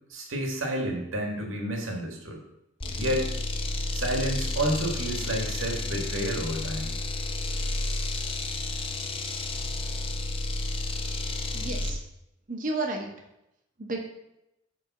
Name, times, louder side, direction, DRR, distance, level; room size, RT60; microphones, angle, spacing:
voice 1, 0.1-2.4 3.0-3.3 3.9-7.0, equal, 70° right, 1 dB, 1.6 m, -30 dB
sound 1, 2.8-12.0, left 2 dB, 25° left, 0.6 m, -31 dB
voice 2, 11.5-12.0 12.5-13.1 13.8-14.0, right 2 dB, 40° right, 2 dB, 0.9 m, -31 dB
7.8 x 3.5 x 5.9 m, 0.84 s
head